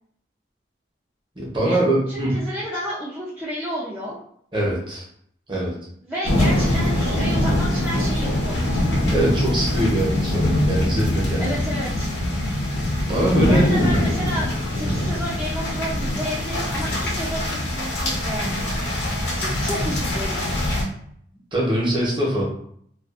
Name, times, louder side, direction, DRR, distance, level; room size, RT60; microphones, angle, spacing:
voice 1, 1.4-2.4 4.5-5.1 5.5-5.7 9.1-11.6 13.1-13.8 14.4-14.5 21.5-22.4, right 1 dB, 25° right, -5 dB, 0.8 m, -22 dB
voice 2, 2.1-4.2 6.0-8.8 11.4-12.1 13.4-18.6 19.2-20.8, equal, 10° right, -9 dB, 0.4 m, -31 dB
sound 1, 6.2-20.8, left 1 dB, 70° left, 0.8 m, -23 dB
2.4 x 2.3 x 2.4 m, 0.66 s
head